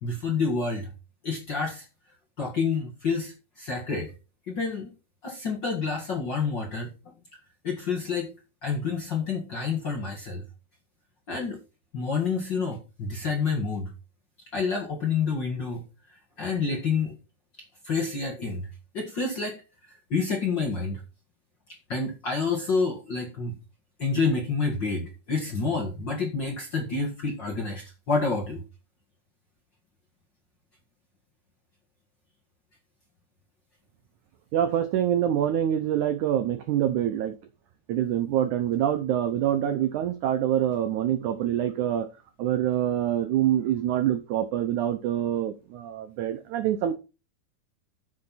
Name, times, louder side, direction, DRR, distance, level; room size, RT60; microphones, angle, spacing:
voice 1, 0.0-0.9 1.2-1.8 2.4-4.1 4.5-4.9 5.2-6.9 7.6-8.3 8.6-10.4 11.3-11.6 11.9-13.9 14.5-15.8 16.1-17.1 17.8-18.7 18.9-19.6 20.1-21.0 21.9-23.5 24.0-28.6, left 4 dB, 45° left, 0 dB, 1.4 m, -28 dB
voice 2, 34.5-37.3 37.9-42.1 42.4-47.0, right 11 dB, 85° right, 10 dB, 1.7 m, -25 dB
10.5 x 7.5 x 4.1 m, 0.30 s
omnidirectional pair, 4.6 m